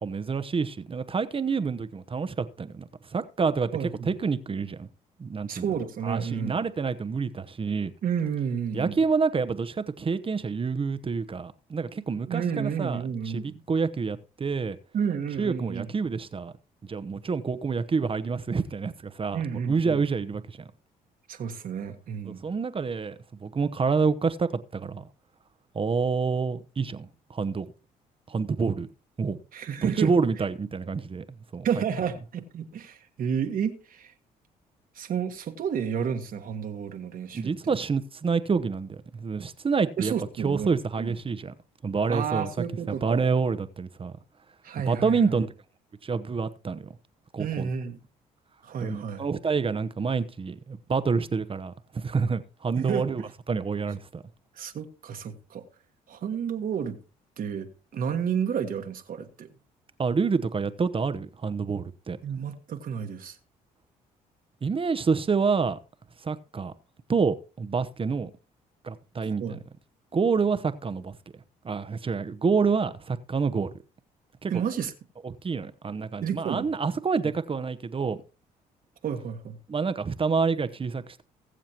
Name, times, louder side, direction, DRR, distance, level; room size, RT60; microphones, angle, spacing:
voice 1, 0.0-4.9 5.2-5.7 6.0-7.9 8.7-14.8 15.4-16.5 16.9-20.7 22.2-25.0 25.7-27.7 28.3-28.9 29.2-29.4 29.8-31.2 31.5-31.7 37.3-40.1 40.4-41.5 41.8-42.5 42.9-44.1 44.9-45.5 46.0-47.0 47.3-47.7 48.8-53.2 53.5-54.2 60.0-62.2 64.6-65.8 66.2-66.7 67.1-68.3 68.8-69.6 70.1-71.2 71.6-73.7 74.4-74.6 75.2-78.2 79.7-81.2, right 5 dB, 35° right, 1.0 m, -28 dB
voice 2, 3.7-4.1 5.5-6.6 8.0-9.0 12.3-13.6 14.9-15.9 19.3-20.0 21.3-22.5 29.5-30.1 31.6-34.1 34.9-37.5 40.0-41.1 42.1-43.3 44.6-45.2 47.4-48.0 48.6-49.2 52.8-53.0 54.6-55.6 56.1-57.0 57.4-59.5 62.2-63.4 69.4-69.6 74.5-74.9 76.2-76.7 79.0-79.6, right 7 dB, 60° right, 1.5 m, -31 dB
20.5 x 7.4 x 3.0 m
supercardioid pair, 60°, 17 cm